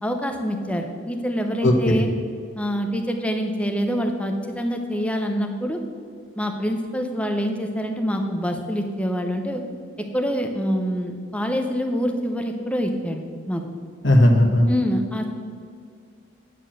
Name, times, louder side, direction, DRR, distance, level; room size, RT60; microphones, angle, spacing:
voice 1, 0.0-2.1 2.6-5.8 6.4-9.6 10.1-13.2 13.5-13.6 14.7-15.2, equal, 5° left, 4 dB, 0.7 m, -25 dB
voice 2, 1.6-2.0 14.0-14.7, left 1 dB, 65° left, 1 dB, 1.2 m, -16 dB
9.2 x 4.5 x 7.6 m, 2.2 s
head